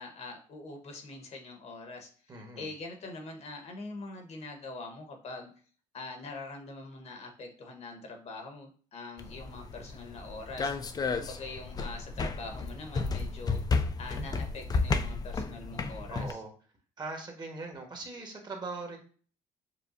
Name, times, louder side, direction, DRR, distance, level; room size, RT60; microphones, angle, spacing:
voice 1, 0.0-5.5 5.9-13.6 14.0-16.4, left 3 dB, 50° left, 4 dB, 1.1 m, -44 dB
voice 2, 2.3-2.7 16.1-16.5 17.0-19.0, right 3 dB, 30° right, 2 dB, 1.3 m, -40 dB
sound 1, 9.2-16.3, left 4 dB, 25° left, 0.4 m, -32 dB
6.8 x 2.3 x 2.5 m, 0.41 s
cardioid pair, 95°, 14 cm